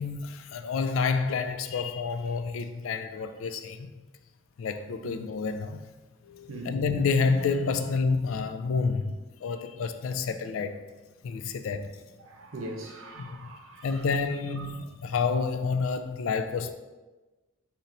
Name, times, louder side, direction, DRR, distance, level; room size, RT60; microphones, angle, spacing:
voice 1, 0.0-3.9 4.6-5.8 6.2-10.8 11.2-11.9 13.2-13.5 13.8-16.7, left 4 dB, 85° left, 0.4 m, -29 dB
voice 2, 12.2-14.0 14.6-14.7, right 2 dB, 85° right, 0.7 m, -41 dB
4.4 x 2.8 x 3.9 m
head